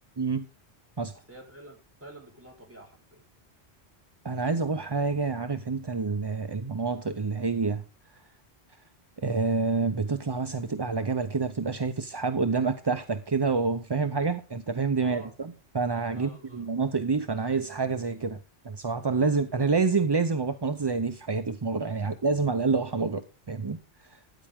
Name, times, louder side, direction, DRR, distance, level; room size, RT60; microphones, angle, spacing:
voice 1, 1.1-3.2 15.0-15.3 16.1-16.7 22.0-22.1, right 1 dB, 10° right, 4.3 m, -48 dB
voice 2, 4.2-7.8 9.2-18.4 18.6-23.8 24.1-24.2, right 4 dB, 30° right, 0.5 m, -28 dB
13.0 x 10.0 x 3.6 m
omnidirectional pair, 1.1 m